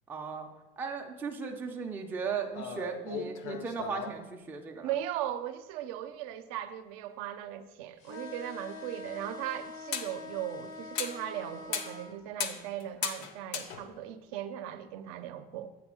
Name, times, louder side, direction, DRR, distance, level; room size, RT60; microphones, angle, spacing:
voice 1, 0.1-0.5 0.8-4.9, right 5 dB, 10° right, 0.4 m, -36 dB
sound 1, 2.5-4.2 8.9-9.0 9.9-10.2 10.7-11.3 11.7-12.0 12.3-14.1, left 7 dB, 55° left, 0.6 m, -37 dB
voice 2, 4.8-15.7, right 11 dB, 70° right, 0.6 m, -38 dB
sound 2, 8.0-12.1, left 3 dB, 85° left, 1.0 m, -45 dB
8.4 x 3.6 x 6.2 m
cardioid pair, 175°, 19 cm